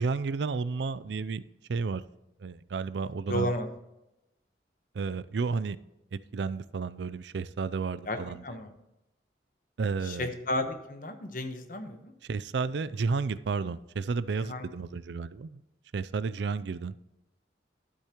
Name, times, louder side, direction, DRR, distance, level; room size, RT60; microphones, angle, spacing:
voice 1, 0.0-1.4 1.7-2.0 2.4-3.5 4.9-5.8 6.1-8.4 9.8-10.3 12.2-15.6 15.9-16.9, right 4 dB, 70° right, 16 dB, 0.4 m, -32 dB
voice 2, 3.3-3.7 8.1-8.2 8.4-8.7 10.0-12.1 14.4-14.7, left 1 dB, 45° left, 6 dB, 1.1 m, -33 dB
12.0 x 8.4 x 3.0 m, 0.90 s
head